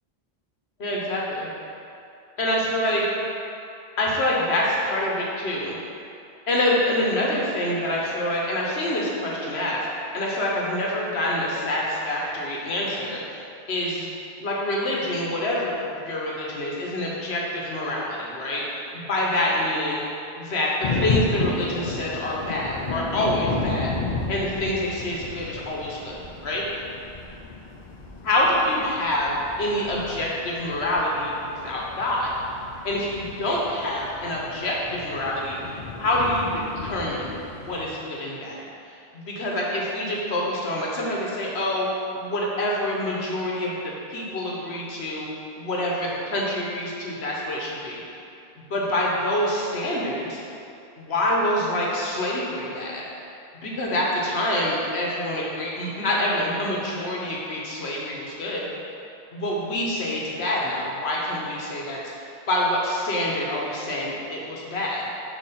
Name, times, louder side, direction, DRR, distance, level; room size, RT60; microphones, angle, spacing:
voice 1, 0.8-1.5 2.4-3.0 4.0-5.7 6.5-9.8 10.1-13.4 13.7-14.1 14.4-18.7 18.9-20.0 20.4-24.0 24.3-26.6 28.2-32.3 32.8-38.6 39.1-41.9 42.1-43.7 44.1-45.3 45.5-48.0 48.7-50.4 51.0-53.0 53.6-58.7 59.3-62.1 62.5-65.0, left 1 dB, 75° left, -3 dB, 1.3 m, -26 dB
sound 1, 20.8-37.9, left 3 dB, 55° left, 0.6 m, -33 dB
6.5 x 3.0 x 5.6 m, 2.6 s
omnidirectional pair, 1.1 m